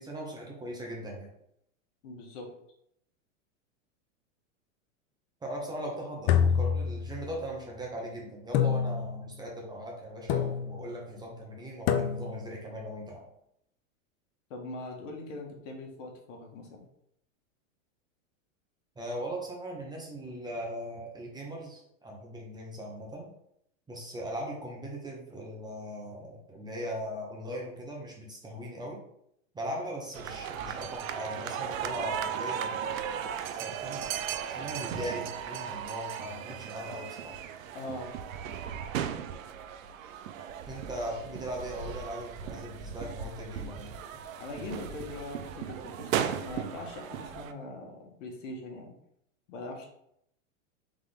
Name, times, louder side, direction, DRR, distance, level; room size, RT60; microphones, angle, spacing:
voice 1, 0.0-1.3 5.4-13.2 19.0-23.3 23.9-29.0 29.5-32.8 33.5-34.1 34.4-37.3 40.7-44.0, equal, 10° right, -2 dB, 0.9 m, -39 dB
voice 2, 2.0-2.5 14.5-16.8 37.7-38.1 44.4-48.9 49.5-49.9, left 2 dB, 70° left, 2 dB, 1.4 m, -41 dB
sound 1, 6.3-7.5 8.5-9.3 10.3-10.9 11.9-12.5, left 8 dB, 35° left, 0.4 m, -27 dB
sound 2, 30.1-47.5, right 8 dB, 85° right, 0.5 m, -36 dB
3.7 x 3.7 x 3.5 m, 0.75 s
hypercardioid pair, 125°, 39 cm